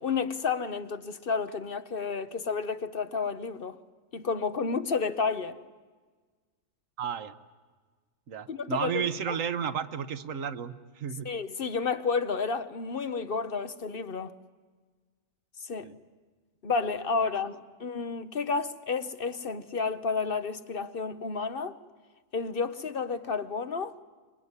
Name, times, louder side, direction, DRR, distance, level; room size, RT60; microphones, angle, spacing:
voice 1, 0.0-3.8 4.1-5.6 8.5-9.4 11.2-14.3 15.6-15.9 16.6-21.8 22.3-23.9, left 5 dB, 50° left, 1.1 m, -31 dB
voice 2, 7.0-7.4 8.3-11.3 15.8-15.9, right 8 dB, 85° right, 1.4 m, -33 dB
25.5 x 23.0 x 9.7 m
omnidirectional pair, 1.3 m